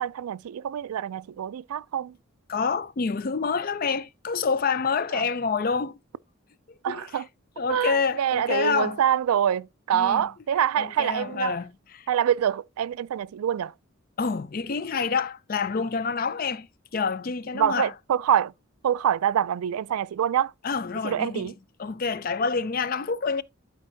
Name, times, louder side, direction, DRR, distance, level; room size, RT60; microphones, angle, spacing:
voice 1, 0.0-2.2 5.1-5.3 6.8-7.3 7.7-11.6 12.1-13.7 17.5-18.5 18.8-20.5 21.0-21.5, right 9 dB, 90° right, 0.3 m, -25 dB
voice 2, 2.5-6.0 6.9-7.0 7.6-9.0 9.9-10.3 10.8-12.1 14.2-16.7 16.9-17.9 20.6-21.5 21.8-23.4, left 5 dB, 40° left, 0.4 m, -27 dB
12.0 x 4.6 x 2.7 m
head